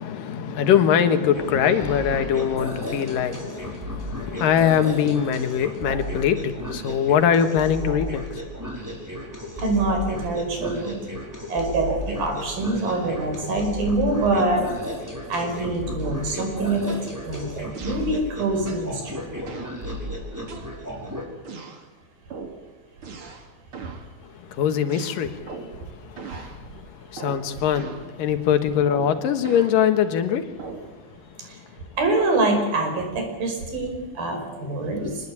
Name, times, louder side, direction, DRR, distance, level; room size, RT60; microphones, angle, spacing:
voice 1, 0.0-8.5 24.4-30.7 35.0-35.2, left 8 dB, 70° left, 8 dB, 3.2 m, -23 dB
sound 1, 1.3-21.2, equal, 5° right, 4.5 m, -34 dB
voice 2, 9.6-11.0 11.5-14.6 15.3-16.8 17.2-19.1 32.0-35.1, right 2 dB, 75° right, 4 dB, 6.9 m, -25 dB
sound 2, 16.0-16.4 16.9-17.1 17.7-18.1 18.7-18.9 19.5-19.8 20.5-21.0 21.4-21.8 22.3-22.6 23.0-23.5 23.7-24.1 24.9-25.8 26.2-26.6 27.2-27.5 27.7-28.1 28.9-29.8 30.6-30.9, right 4 dB, 40° right, 3.0 m, -39 dB
25.5 x 20.0 x 8.6 m, 1.2 s
omnidirectional pair, 4.2 m